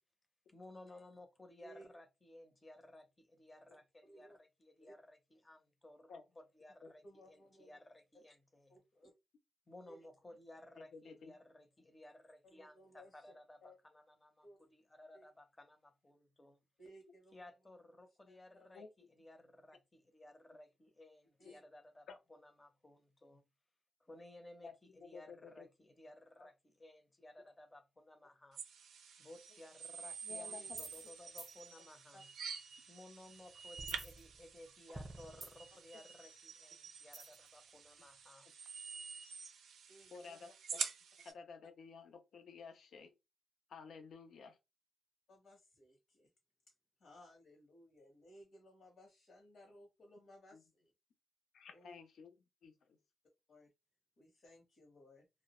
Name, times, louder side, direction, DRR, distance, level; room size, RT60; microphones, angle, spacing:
voice 1, 0.5-8.8 9.7-16.6 17.3-23.5 24.0-28.6 29.2-32.3 32.9-38.5, left 1 dB, 20° left, 0.6 m, -58 dB
voice 2, 1.5-1.9 3.7-3.8 4.0-4.4 4.8-4.9 7.0-7.8 8.7-9.1 9.8-10.0 12.4-13.2 13.6-13.8 14.4-14.7 15.1-15.2 16.8-17.5 18.3-18.8 21.4-21.6 26.4-26.5 30.3-30.7 32.1-32.2 35.4-35.5 39.9-40.5 45.3-46.3 46.7-46.8 47.0-50.9 51.7-52.0 53.5-53.7 54.2-55.3, equal, 60° left, 0.8 m, -61 dB
voice 3, 10.8-11.3 18.7-18.9 24.6-24.7 25.0-25.7 30.3-30.8 40.1-40.8 41.2-43.1 43.7-44.6 50.5-50.6 51.5-52.3 52.6-53.0, left 5 dB, 75° left, 0.5 m, -53 dB
sound 1, 28.5-41.3, right 6 dB, 85° right, 0.4 m, -48 dB
sound 2, 30.7-31.1 31.4-31.5 33.8-34.6 34.9-35.8 37.1-37.5, right 2 dB, 20° right, 0.6 m, -49 dB
2.2 x 2.0 x 2.9 m
cardioid pair, 90°, 0 cm